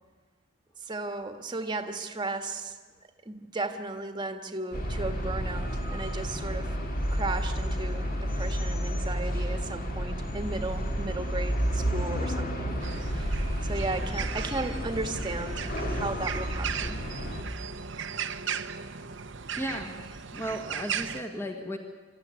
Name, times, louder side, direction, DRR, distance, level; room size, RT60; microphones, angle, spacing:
voice 1, 0.8-2.8 3.2-6.8 7.1-12.7 13.1-13.4 13.7-15.6 15.9-17.0, right 2 dB, 20° right, 6 dB, 1.5 m, -35 dB
sound 1, 4.7-17.4, equal, 45° left, 2.6 m, -31 dB
sound 2, 12.8-21.2, right 6 dB, 65° right, 0.9 m, -36 dB
voice 2, 19.6-20.0 20.3-21.8, equal, 10° left, 4 dB, 1.5 m, -35 dB
26.0 x 14.0 x 9.8 m, 1.4 s
head